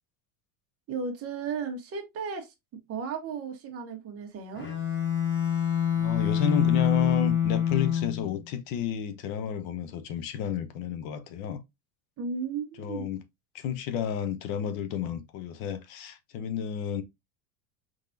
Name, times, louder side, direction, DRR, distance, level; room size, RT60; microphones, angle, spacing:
voice 1, 0.9-2.5 2.9-4.7 12.2-13.1, right 5 dB, 30° right, 1.2 m, -34 dB
Bowed string instrument, 4.5-8.4, left 9 dB, 25° left, 1.3 m, -26 dB
voice 2, 5.9-11.6 12.8-13.2 13.5-17.0, left 7 dB, 65° left, 1.0 m, -31 dB
4.6 x 3.9 x 2.6 m
cardioid pair, 155°, 45 cm